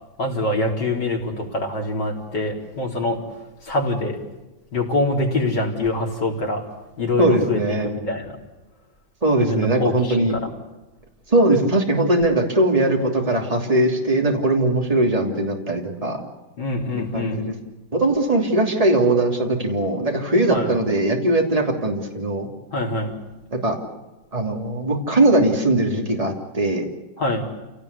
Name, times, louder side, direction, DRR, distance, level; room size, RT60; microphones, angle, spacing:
voice 1, 0.2-3.3 3.6-4.2 4.7-6.7 7.0-8.3 9.4-10.5 16.6-17.4 20.5-20.7 22.7-23.1 27.2-27.5, left 2 dB, 85° left, 0 dB, 4.6 m, -24 dB
voice 2, 7.2-7.9 9.2-10.3 11.3-16.2 17.1-17.5 17.9-22.5 23.6-23.8 24.3-26.8, right 2 dB, 20° right, 1 dB, 3.2 m, -20 dB
28.5 x 18.0 x 8.4 m, 1.1 s
omnidirectional pair, 1.8 m